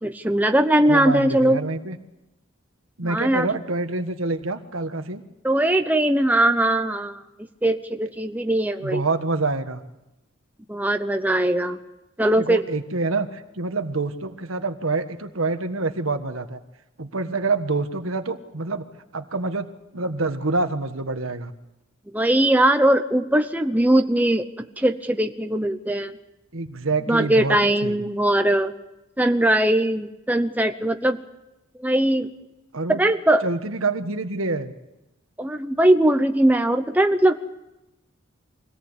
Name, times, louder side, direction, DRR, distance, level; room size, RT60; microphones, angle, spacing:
voice 1, 0.0-1.6 3.0-3.5 5.4-7.2 7.6-9.0 10.7-11.8 12.2-12.6 22.1-26.2 27.1-28.7 29.2-31.2 31.8-32.3 32.9-33.4 35.4-37.4, right 1 dB, 10° right, 6 dB, 0.8 m, -20 dB
voice 2, 0.8-2.0 3.0-5.2 8.8-9.8 12.4-16.6 17.0-18.8 19.1-19.7 19.9-21.5 26.5-28.0 32.7-33.0 33.4-34.7, right 3 dB, 80° right, 8 dB, 1.5 m, -26 dB
24.5 x 17.5 x 8.2 m, 0.97 s
head